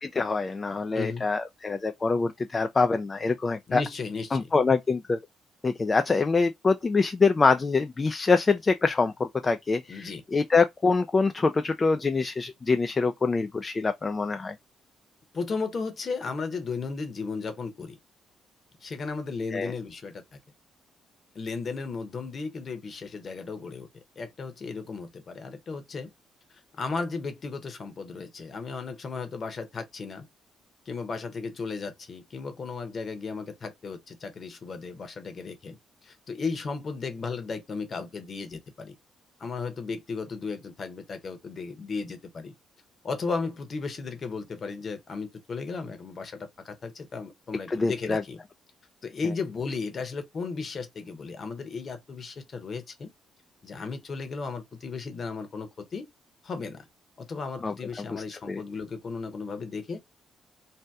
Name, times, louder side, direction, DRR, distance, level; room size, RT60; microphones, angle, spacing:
voice 1, 0.0-3.8 4.3-5.2 5.6-14.5 19.5-19.7 47.7-48.2 57.6-57.7 58.1-58.6, left 4 dB, 30° left, 0.3 m, -25 dB
voice 2, 0.9-1.3 3.7-4.5 9.9-10.2 15.3-18.0 18.8-20.4 21.3-26.1 26.5-30.3 30.9-39.0 39.4-42.5 43.0-48.4 49.0-53.1 53.6-56.0 56.4-56.9 57.2-60.0, left 4 dB, 45° left, 0.9 m, -35 dB
2.7 x 2.1 x 3.4 m
cardioid pair, 90°, 0 cm